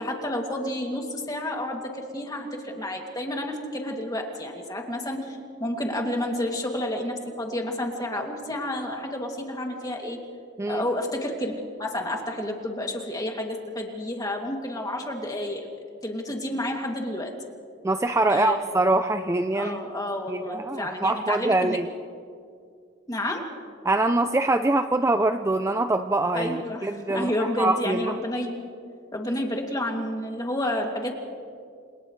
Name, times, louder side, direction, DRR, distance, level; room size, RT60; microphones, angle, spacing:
voice 1, 0.0-10.2 10.7-15.7 16.0-17.3 18.3-18.6 19.5-21.8 23.1-23.4 26.3-28.7 29.1-31.1, left 1 dB, 20° left, 0 dB, 2.6 m, -30 dB
voice 2, 17.8-19.8 20.3-21.9 23.8-28.2, right 2 dB, 15° right, 7 dB, 0.5 m, -24 dB
29.5 x 28.0 x 3.3 m, 2.3 s
head